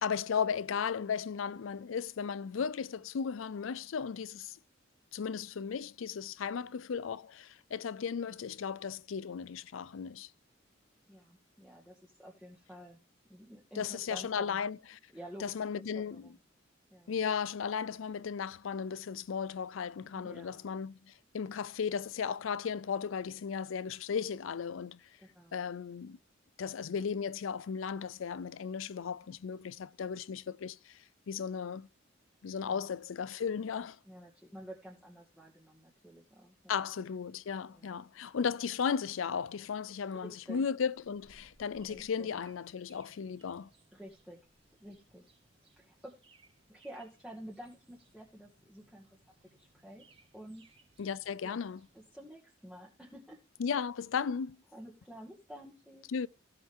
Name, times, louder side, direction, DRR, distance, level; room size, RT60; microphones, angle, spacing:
voice 1, 0.0-4.6 5.1-10.3 13.8-15.0 15.4-16.4 17.1-25.0 25.5-26.2 26.6-31.9 32.4-34.0 36.7-43.7 51.0-51.8 53.6-54.6 56.1-56.3, left 6 dB, 85° left, 0.4 m, -35 dB
voice 2, 11.1-13.0 13.3-14.6 15.1-16.4 16.9-17.1 20.1-20.7 25.2-25.6 29.1-29.2 32.7-32.8 34.0-36.8 37.7-38.0 40.2-40.6 41.9-42.3 43.9-44.4 44.8-45.2 45.8-46.1 46.7-49.2 49.6-50.1 50.3-50.6 51.4-51.5 51.9-53.4 53.7-53.8 54.7-56.1, equal, ahead, 2.2 m, -50 dB
sound 1, 40.9-52.1, right 2 dB, 30° right, 1.8 m, -66 dB
15.0 x 7.5 x 3.7 m
head